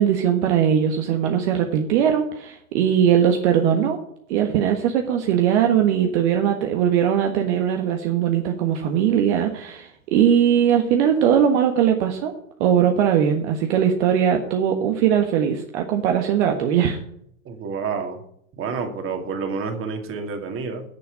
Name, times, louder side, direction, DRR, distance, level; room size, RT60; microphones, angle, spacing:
voice 1, 0.0-4.0 4.3-12.3 12.6-17.0, right 9 dB, 55° right, 4 dB, 1.5 m, -20 dB
voice 2, 17.4-18.2 18.6-20.8, right 5 dB, 30° right, 5 dB, 2.5 m, -29 dB
10.0 x 7.1 x 8.5 m, 0.70 s
hypercardioid pair, 95°, 41 cm